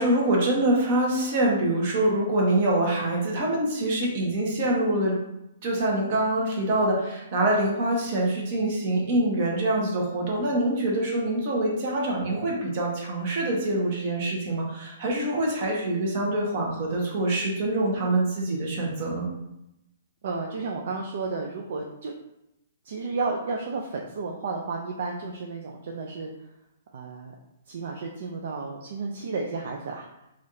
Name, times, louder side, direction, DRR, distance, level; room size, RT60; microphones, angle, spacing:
voice 1, 0.0-5.2 5.6-19.3, right 1 dB, 45° right, -2 dB, 0.9 m, -25 dB
voice 2, 20.2-22.1 22.8-26.3 26.9-27.3 27.7-30.1, right 4 dB, 60° right, 1 dB, 0.4 m, -32 dB
3.3 x 2.4 x 2.7 m, 0.86 s
hypercardioid pair, 150°, 0 cm